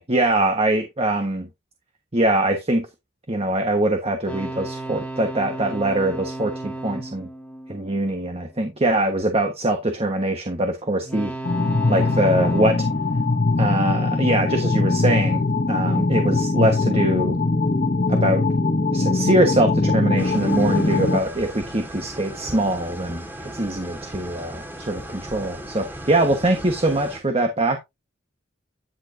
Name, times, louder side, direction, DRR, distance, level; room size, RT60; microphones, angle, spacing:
voice 1, 0.0-1.5 2.1-2.9 3.3-7.3 7.7-11.3 11.9-12.9 13.6-15.4 15.7-17.4 18.1-18.4 18.9-27.8, right 1 dB, 30° right, 1.3 m, -23 dB
sound 1, 4.3-8.7 11.0-14.3, right 2 dB, 5° left, 1.8 m, -35 dB
sound 2, 11.4-21.2, left 3 dB, 40° left, 0.8 m, -21 dB
sound 3, 20.2-27.2, right 1 dB, 10° right, 1.8 m, -37 dB
11.0 x 6.5 x 2.7 m
head